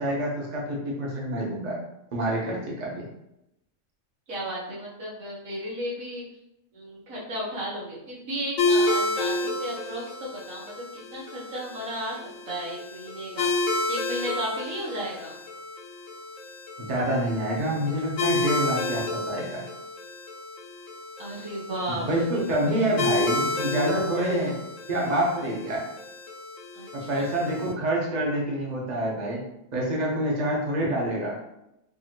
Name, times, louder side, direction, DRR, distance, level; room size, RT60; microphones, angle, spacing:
voice 1, 0.0-1.8 2.1-3.1 16.9-19.6 21.9-24.6 24.9-25.9 26.9-29.4 29.7-31.4, right 1 dB, 35° right, -3 dB, 0.9 m, -27 dB
voice 2, 4.3-6.2 6.7-15.3 21.2-22.1 26.7-27.3, equal, 80° right, -6 dB, 1.8 m, -34 dB
sound 1, 8.6-27.7, left 2 dB, 70° left, 0.9 m, -31 dB
4.6 x 2.7 x 2.9 m, 0.84 s
omnidirectional pair, 1.4 m